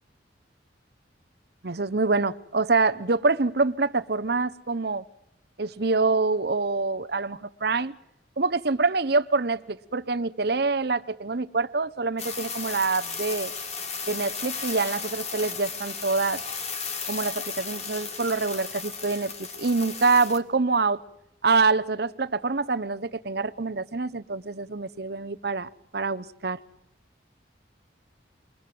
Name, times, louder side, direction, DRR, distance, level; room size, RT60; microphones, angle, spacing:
voice 1, 1.6-5.0 5.6-7.9 8.4-13.5 14.1-16.4 17.1-19.3 19.6-21.0 21.4-26.6, right 3 dB, 60° right, 12 dB, 0.9 m, -25 dB
sound 1, 12.2-20.4, left 5 dB, 35° left, 2.3 m, -35 dB
28.5 x 22.5 x 7.7 m, 0.87 s
head